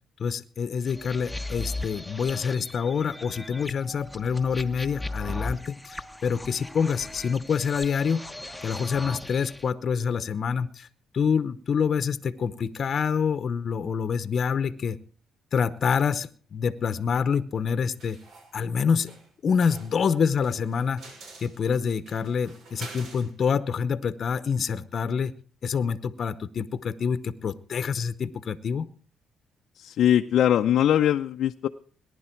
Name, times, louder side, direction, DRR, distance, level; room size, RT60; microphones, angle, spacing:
voice 1, 0.2-8.2 8.6-10.9 11.1-15.0 15.5-18.2 18.5-19.1 19.4-21.0 21.4-25.3 25.6-28.9, left 6 dB, 55° left, 13 dB, 0.8 m, -26 dB
sound 1, 0.9-9.7, left 2 dB, 5° left, 1.0 m, -38 dB
sound 2, 18.0-18.5 19.1-19.3 19.7-23.3, right 3 dB, 75° right, 5.8 m, -46 dB
voice 2, 29.8-31.7, left 10 dB, 75° left, 6 dB, 0.6 m, -21 dB
19.0 x 11.0 x 4.5 m, 0.42 s
cardioid pair, 90°, 0 cm